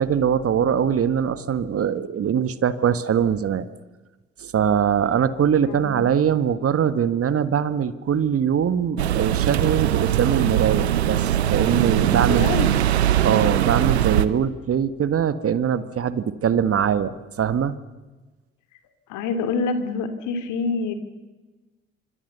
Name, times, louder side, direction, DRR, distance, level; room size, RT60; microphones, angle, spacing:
voice 1, 0.0-3.7 4.4-12.5 13.2-17.7, right 8 dB, 45° right, 14 dB, 1.6 m, -22 dB
sound 1, 9.0-14.3, right 11 dB, 85° right, 1.0 m, -21 dB
voice 2, 12.2-12.7 19.1-20.9, left 4 dB, 70° left, 9 dB, 2.9 m, -26 dB
25.5 x 25.5 x 6.9 m, 1.2 s
hypercardioid pair, 50°, 32 cm